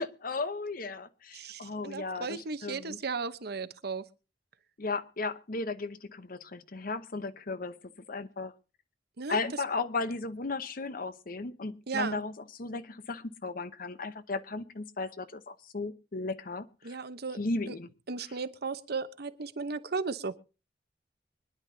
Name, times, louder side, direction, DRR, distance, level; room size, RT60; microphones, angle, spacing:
voice 1, 0.0-3.0 4.8-8.5 9.3-17.0 17.3-17.9, left 3 dB, 55° left, 12 dB, 0.9 m, -35 dB
voice 2, 1.3-4.0 9.2-9.4 11.9-12.2 16.8-17.4 17.7-17.8 18.1-20.4, right 4 dB, 60° right, 12 dB, 0.9 m, -35 dB
24.5 x 10.5 x 2.7 m, 0.32 s
head